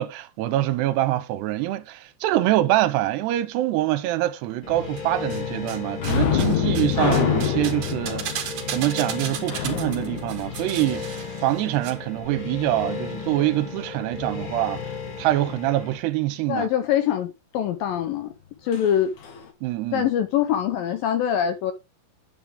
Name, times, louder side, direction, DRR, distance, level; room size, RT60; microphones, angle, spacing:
voice 1, 0.0-11.1 11.4-14.8 15.2-16.7 19.6-20.1, right 15 dB, 80° right, 2.9 m, -25 dB
sound 1, 4.6-16.0, left 5 dB, 40° left, 2.1 m, -35 dB
sound 2, 5.0-5.8 6.0-11.9 12.2-12.3, right 8 dB, 55° right, 2.4 m, -35 dB
sound 3, 6.0-11.4 18.7-18.9 19.2-19.4, left 7 dB, 55° left, 2.5 m, -26 dB
voice 2, 16.5-18.3 18.6-19.1 19.9-21.7, left 10 dB, 75° left, 2.2 m, -23 dB
9.5 x 8.5 x 3.6 m
omnidirectional pair, 4.8 m